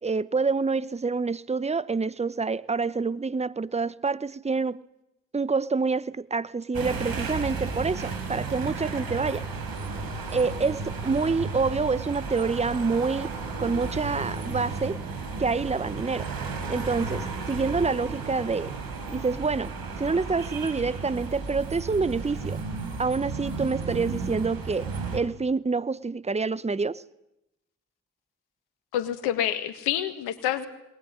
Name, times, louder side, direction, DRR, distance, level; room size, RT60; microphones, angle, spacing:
voice 1, 0.0-4.8 5.3-9.4 10.3-13.3 13.6-15.0 15.4-16.3 16.7-18.7 19.1-22.6 23.0-27.0, right 4 dB, 15° right, 0.9 m, -27 dB
sound 1, 6.7-25.2, right 4 dB, 65° right, 4.9 m, -34 dB
voice 2, 28.9-30.7, left 11 dB, 80° left, 1.9 m, -27 dB
20.5 x 20.0 x 10.0 m
hypercardioid pair, 40°, 38 cm